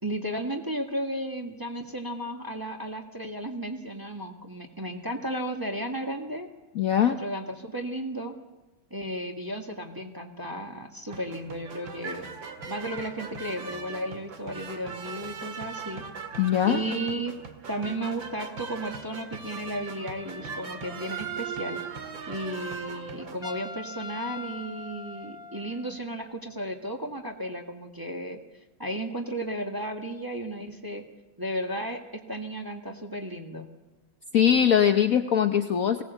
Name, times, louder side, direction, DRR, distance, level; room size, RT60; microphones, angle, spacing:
voice 1, 0.0-6.5 7.1-8.3 8.9-12.3 12.7-16.0 16.6-17.3 17.7-21.8 22.3-28.4 28.8-31.0 31.4-32.0 32.3-33.7, right 1 dB, 10° right, 2 dB, 1.5 m, -34 dB
voice 2, 6.7-7.2 16.4-16.8 34.3-36.0, left 9 dB, 55° left, 6 dB, 1.1 m, -21 dB
sound 1, 11.1-23.4, right 5 dB, 85° right, 2.5 m, -39 dB
Trumpet, 23.4-26.1, left 2 dB, 20° left, 0.7 m, -41 dB
20.0 x 17.0 x 8.0 m, 1.1 s
omnidirectional pair, 2.1 m